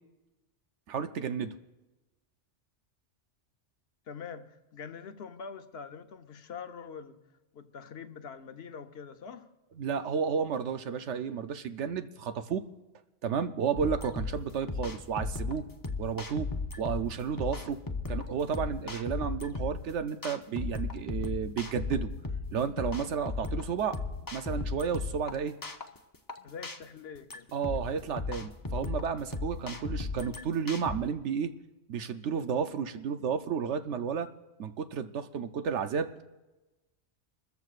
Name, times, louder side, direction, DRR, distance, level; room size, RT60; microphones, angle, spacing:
voice 1, 0.9-1.5 9.8-12.6 13.2-15.7 16.0-16.5 16.8-17.8 18.1-22.1 22.5-24.0 24.3-25.5 27.5-31.5 31.9-34.3 34.6-36.2, right 7 dB, 80° right, 8 dB, 1.0 m, -32 dB
voice 2, 4.1-7.2 7.5-9.5 26.4-27.5 27.7-27.8, left 6 dB, 65° left, 7 dB, 1.1 m, -44 dB
sound 1, 13.8-31.0, left 3 dB, 20° left, 0.6 m, -36 dB
28.0 x 14.0 x 2.4 m, 1.1 s
omnidirectional pair, 1.2 m